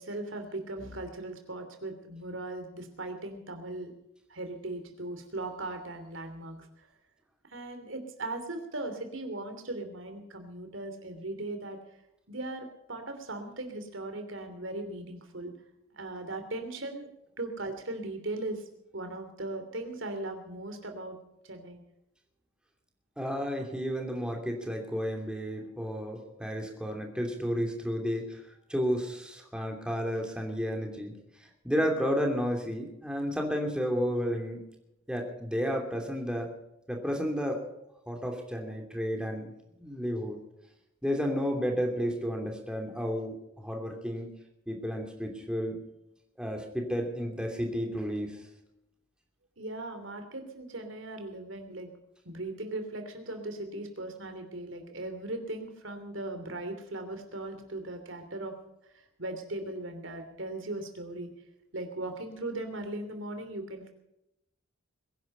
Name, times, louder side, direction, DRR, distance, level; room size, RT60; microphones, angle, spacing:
voice 1, 0.0-3.9 4.3-6.9 7.5-11.8 12.3-15.5 15.9-17.1 17.4-18.6 18.9-21.2 21.4-21.8 31.7-32.0 49.6-51.9 52.2-58.6 58.9-61.3 61.7-63.9, right 2 dB, 70° right, 6 dB, 3.0 m, -38 dB
voice 2, 23.2-28.4 28.7-31.1 31.6-34.6 35.1-36.5 36.9-37.6 38.1-39.5 39.8-40.4 41.0-44.3 44.7-45.8 46.4-48.4, equal, 5° right, 1 dB, 2.9 m, -32 dB
22.0 x 10.5 x 5.5 m, 0.86 s
head